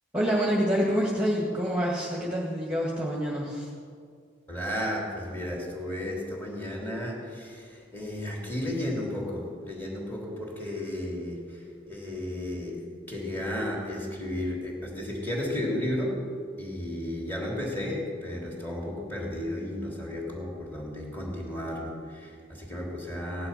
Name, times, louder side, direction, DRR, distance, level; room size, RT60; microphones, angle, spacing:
voice 1, 0.1-3.7, equal, 5° right, -4 dB, 1.9 m, -27 dB
voice 2, 4.5-16.1 16.6-23.5, left 1 dB, 10° left, -3 dB, 3.3 m, -33 dB
17.5 x 10.5 x 5.9 m, 2.1 s
head